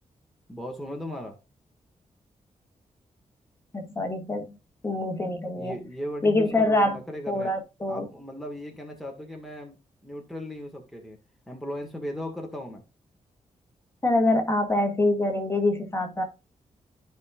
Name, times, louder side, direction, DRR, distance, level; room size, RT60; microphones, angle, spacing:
voice 1, 0.5-1.4 5.6-7.5 7.9-9.8 10.0-11.2 11.5-12.8, equal, ahead, 1.8 m, -37 dB
voice 2, 3.7-4.6 4.8-5.7 6.2-7.0 7.3-8.1 14.0-16.2, left 2 dB, 20° left, 2.1 m, -25 dB
14.0 x 5.5 x 2.5 m
wide cardioid pair, 130°, 13 cm